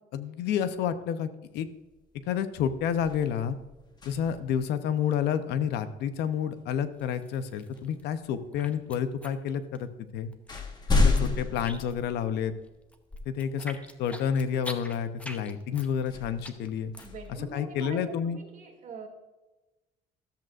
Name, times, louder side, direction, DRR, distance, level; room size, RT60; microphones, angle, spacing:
voice 1, 0.1-1.7 2.3-3.6 4.0-10.3 11.0-12.5 13.3-16.9 17.5-18.4, left 8 dB, 80° left, 11 dB, 0.7 m, -30 dB
sound 1, 1.9-2.2 2.5-4.6 6.8-6.9 7.8-8.5 9.4-9.5 9.9-12.7 13.3-13.4 16.0-18.2, left 3 dB, 25° left, 1.3 m, -31 dB
sound 2, 7.0-8.0 8.3-10.1 10.3-12.2 12.5-17.3, left 1 dB, 10° left, 0.8 m, -44 dB
voice 2, 17.0-19.1, right 5 dB, 50° right, 2 dB, 2.5 m, -43 dB
13.0 x 7.7 x 2.5 m, 1.1 s
cardioid pair, 110°, 17 cm